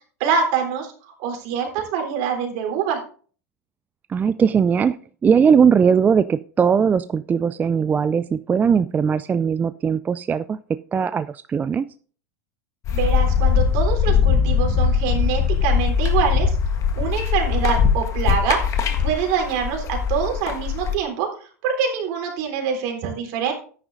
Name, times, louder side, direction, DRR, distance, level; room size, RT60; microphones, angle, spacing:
voice 1, 0.2-0.9 1.2-3.0 12.9-16.6 17.0-21.3 21.6-23.5, right 7 dB, 55° right, 2 dB, 3.7 m, -25 dB
voice 2, 4.1-5.0 5.2-10.6 10.9-11.8, right 6 dB, 20° right, 13 dB, 0.4 m, -19 dB
sound 1, 12.8-20.9, left 7 dB, 40° left, 1.5 m, -21 dB
13.5 x 9.8 x 2.6 m, 0.43 s
hypercardioid pair, 90°, 9 cm